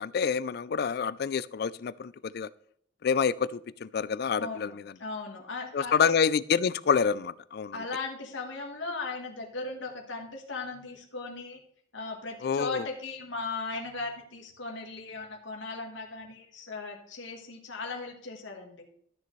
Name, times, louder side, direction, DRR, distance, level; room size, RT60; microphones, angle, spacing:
voice 1, 0.0-2.5 3.0-4.7 5.7-7.8 12.4-12.8, left 6 dB, 50° left, 18 dB, 0.3 m, -27 dB
voice 2, 4.4-6.1 7.7-11.6 11.9-18.8, left 3 dB, 75° left, 2 dB, 1.4 m, -37 dB
13.0 x 6.7 x 3.1 m, 0.66 s
head